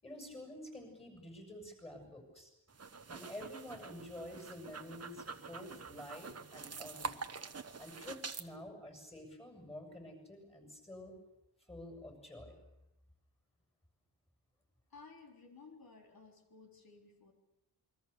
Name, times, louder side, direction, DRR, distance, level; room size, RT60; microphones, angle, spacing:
voice 1, 0.0-2.5 3.1-7.3 7.8-11.1 11.7-12.6, left 1 dB, 15° left, 4 dB, 7.3 m, -49 dB
sound 1, 2.7-8.5, right 5 dB, 35° right, 1.1 m, -46 dB
voice 2, 14.9-17.3, left 4 dB, 55° left, 2 dB, 4.0 m, -56 dB
28.0 x 22.5 x 6.9 m, 0.89 s
wide cardioid pair, 150°, 43 cm